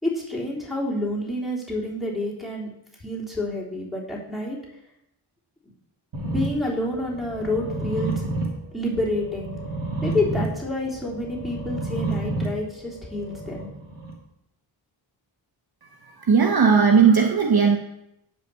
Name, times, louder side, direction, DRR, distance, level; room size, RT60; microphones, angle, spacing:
voice 1, 0.0-2.7 3.0-4.6 6.2-8.3 8.7-9.6 10.0-13.7, left 1 dB, ahead, -6 dB, 3.5 m, -28 dB
sound 1, 6.1-14.1, right 2 dB, 65° right, 2.9 m, -31 dB
voice 2, 16.0-17.8, right 6 dB, 50° right, 3 dB, 1.0 m, -17 dB
9.2 x 5.4 x 6.9 m, 0.82 s
wide cardioid pair, 90°, 48 cm